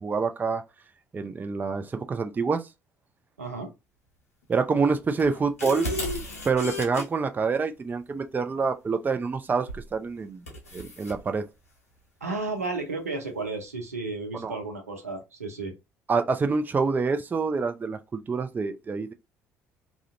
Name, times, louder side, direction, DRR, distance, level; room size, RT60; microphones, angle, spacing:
voice 1, 0.0-0.6 1.1-2.7 4.5-5.9 6.4-10.4 10.7-11.4 14.3-14.6 16.1-19.1, right 4 dB, 25° right, 0.4 m, -26 dB
voice 2, 3.4-3.7 12.2-15.7, right 3 dB, 90° right, 0.6 m, -33 dB
sound 1, 5.2-7.0 9.7-9.9 10.5-11.2, left 2 dB, 85° left, 0.6 m, -33 dB
2.4 x 2.1 x 2.6 m
figure-of-eight pair, 55°, 8 cm